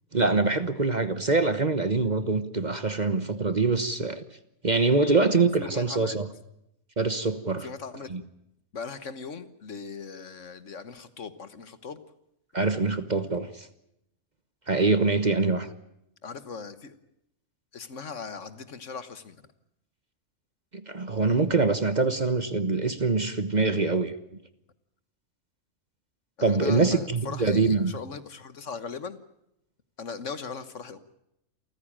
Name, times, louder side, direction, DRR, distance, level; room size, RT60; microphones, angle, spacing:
voice 1, 0.1-4.2 4.6-6.3 7.0-7.7 8.1-8.2 12.5-13.7 14.7-15.7 20.9-24.2 26.4-27.9, right 3 dB, 35° right, 12 dB, 1.2 m, -24 dB
voice 2, 4.9-6.2 7.6-8.1 8.7-12.0 16.2-17.0 17.7-19.4 26.4-29.2 30.0-31.0, left 5 dB, 60° left, 13 dB, 1.6 m, -39 dB
28.5 x 15.0 x 8.8 m, 0.82 s
omnidirectional pair, 1.5 m